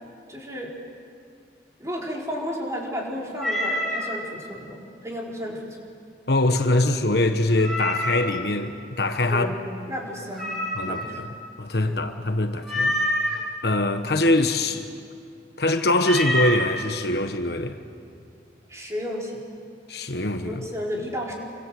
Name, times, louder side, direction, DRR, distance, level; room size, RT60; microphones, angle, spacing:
voice 1, 0.3-0.7 1.8-5.8 6.5-6.6 9.3-9.6 9.9-10.5 10.8-11.1 11.8-12.1 18.7-19.4 20.4-21.3, equal, 15° right, -2 dB, 4.4 m, -33 dB
Meow, 3.4-4.1 7.6-8.3 10.4-11.2 12.6-13.4 16.0-16.6, left 1 dB, ahead, 5.6 m, -26 dB
voice 2, 6.3-9.6 10.7-11.3 11.6-13.0 13.6-14.9 15.6-17.8 19.9-20.6, left 2 dB, 60° left, 7 dB, 1.3 m, -23 dB
28.5 x 25.0 x 7.8 m, 2.4 s
head